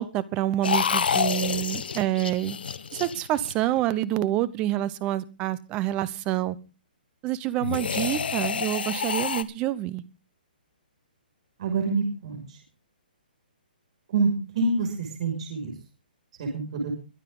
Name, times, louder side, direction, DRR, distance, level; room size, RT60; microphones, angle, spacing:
voice 1, 0.0-2.6 2.9-6.6 7.2-10.0, right 14 dB, 15° right, 19 dB, 0.7 m, -27 dB
sound 1, 0.6-3.8 7.6-9.4, left 6 dB, 75° left, 1.1 m, -28 dB
voice 2, 11.6-12.4 14.1-15.7 16.4-16.9, right 3 dB, 40° right, 2 dB, 6.0 m, -26 dB
22.5 x 9.0 x 3.8 m, 0.30 s
hypercardioid pair, 170°, 5 cm